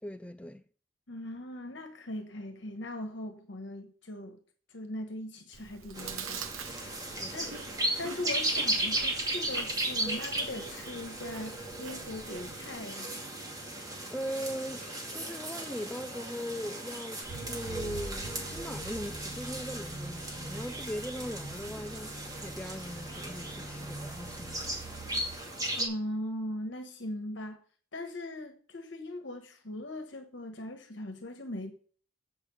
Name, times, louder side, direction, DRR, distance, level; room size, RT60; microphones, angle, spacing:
voice 1, 0.0-0.6 7.2-7.4 14.1-24.7, equal, 5° left, 0.3 m, -40 dB
voice 2, 1.1-4.4 4.7-6.5 6.8-6.9 7.3-7.6 8.0-13.2 25.7-27.6 27.9-31.7, left 1 dB, 65° left, 1.3 m, -40 dB
Chewing mastication, 5.5-12.8, right 7 dB, 90° right, 0.7 m, -46 dB
sound 1, 5.9-25.9, right 1 dB, 20° right, 2.3 m, -36 dB
sound 2, 17.3-25.4, right 2 dB, 65° right, 5.0 m, -44 dB
8.3 x 6.7 x 6.8 m
head